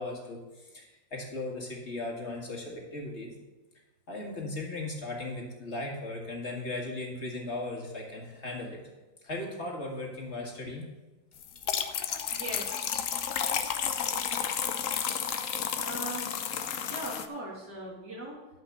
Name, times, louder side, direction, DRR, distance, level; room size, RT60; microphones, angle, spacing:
voice 1, 0.0-3.4 4.1-8.9 9.2-10.9, left 2 dB, 35° left, -1 dB, 2.2 m, -37 dB
sound 1, 11.4-17.3, left 8 dB, 60° left, 0.9 m, -32 dB
voice 2, 12.3-12.8 15.8-16.5 16.8-18.4, right 2 dB, 55° right, -4 dB, 3.2 m, -40 dB
12.0 x 5.3 x 6.8 m, 1.1 s
omnidirectional pair, 2.0 m